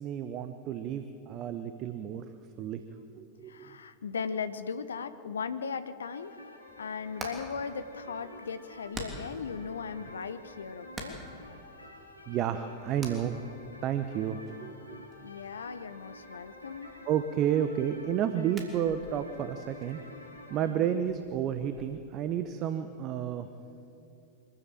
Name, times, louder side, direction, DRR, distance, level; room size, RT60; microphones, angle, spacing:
voice 1, 0.0-2.3 2.6-2.8 3.1-3.8 12.3-13.3 13.8-15.1 17.0-20.0 20.5-23.5, right 9 dB, 35° right, 10 dB, 0.9 m, -31 dB
voice 2, 3.5-6.4 6.8-11.2 15.2-17.0 20.6-21.0, left 6 dB, 70° left, 12 dB, 0.8 m, -38 dB
sound 1, 6.1-20.7, left 1 dB, 85° left, 2.2 m, -50 dB
Hammer, 6.7-21.9, right 2 dB, 20° right, 3.3 m, -49 dB
24.5 x 15.0 x 8.9 m, 2.7 s
figure-of-eight pair, 90°, 0 cm